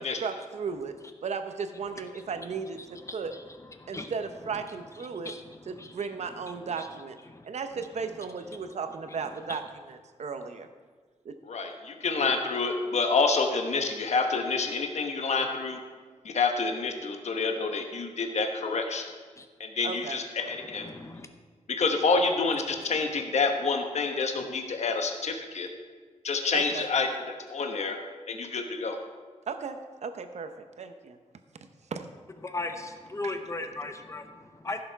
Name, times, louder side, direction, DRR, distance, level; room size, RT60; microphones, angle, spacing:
voice 1, 0.2-3.4 3.9-5.4 5.7-7.2 7.4-10.7 11.2-11.4 19.8-20.2 26.5-26.9 29.5-31.2 31.9-32.1 33.2-33.3, right 5 dB, 60° right, 8 dB, 0.7 m, -35 dB
voice 2, 3.1-3.4 3.8-4.1 5.1-5.4 5.7-6.0 6.8-6.9 7.3-7.4 9.5-9.6 19.4-19.5 20.8-21.3 32.4-34.8, left 2 dB, 25° left, 7 dB, 0.8 m, -37 dB
voice 3, 11.4-15.8 16.2-19.1 19.6-20.9 21.7-25.7 26.2-28.0 28.3-29.0, left 4 dB, 60° left, 4 dB, 1.1 m, -28 dB
15.0 x 6.8 x 4.6 m, 1.5 s
wide cardioid pair, 170°, 13 cm